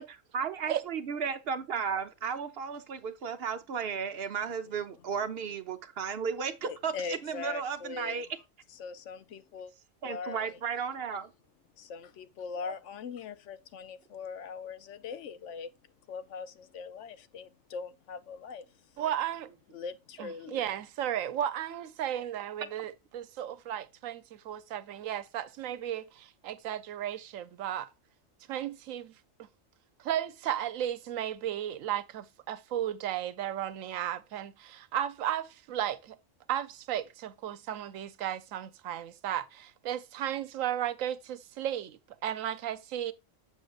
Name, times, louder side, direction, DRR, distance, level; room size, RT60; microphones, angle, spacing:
voice 1, 0.3-8.3 10.0-11.3 12.6-12.7 22.6-22.7, right 6 dB, 55° right, 0.8 m, -34 dB
voice 2, 6.7-8.2 8.8-9.7 10.0-10.6 11.8-15.7 16.1-18.6 19.7-20.7, left 5 dB, 70° left, 1.0 m, -41 dB
voice 3, 19.0-19.6 20.2-27.9 28.5-29.2 30.0-36.2 36.5-43.1, right 11 dB, 90° right, 1.0 m, -34 dB
7.1 x 6.5 x 2.4 m
omnidirectional pair, 1.3 m